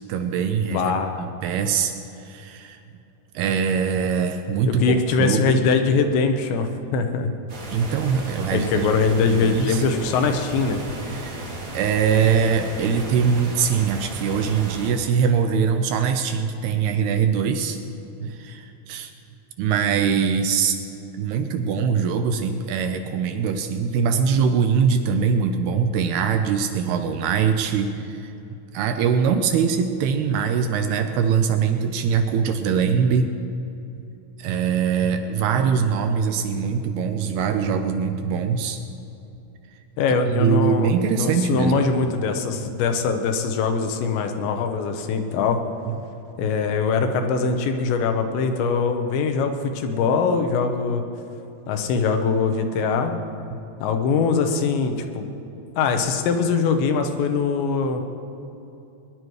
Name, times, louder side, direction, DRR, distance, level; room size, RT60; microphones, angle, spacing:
voice 1, 0.1-0.9 1.2-2.8 3.3-5.6 7.7-8.9 9.2-9.8 11.1-11.4 11.7-17.8 18.2-19.1 19.6-20.8 21.2-28.3 28.7-33.3 34.4-38.9 40.3-41.9 45.9-46.0 53.5-53.6, right 6 dB, 80° right, 6 dB, 2.5 m, -22 dB
voice 2, 0.7-1.2 4.7-7.3 8.5-10.8 40.0-45.6 46.4-51.0 51.7-53.1 53.8-55.3 55.8-58.0, left 5 dB, 85° left, 6 dB, 3.3 m, -22 dB
sound 1, 7.5-14.9, right 1 dB, 50° right, 1.1 m, -35 dB
21.0 x 11.0 x 4.8 m, 2.8 s
omnidirectional pair, 5.0 m